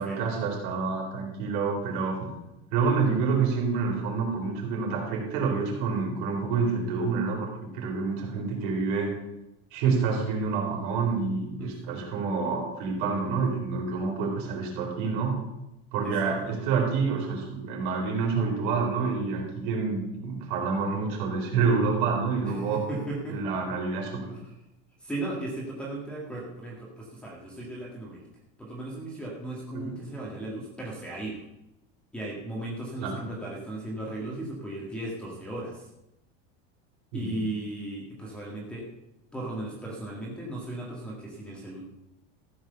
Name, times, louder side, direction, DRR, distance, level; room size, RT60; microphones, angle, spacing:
voice 1, 0.0-2.3 2.7-9.1 9.7-15.4 15.9-22.8 23.3-24.3 29.7-29.9 33.0-33.2 37.1-37.3, right 5 dB, 55° right, -1 dB, 4.3 m, -28 dB
voice 2, 11.6-12.1 16.0-16.6 22.4-23.4 24.4-24.5 25.0-28.3 28.6-31.4 32.1-35.9 37.1-38.8 39.3-41.8, right 1 dB, 5° left, -3 dB, 1.8 m, -36 dB
14.5 x 6.3 x 6.8 m, 0.90 s
cardioid pair, 180°, 30 cm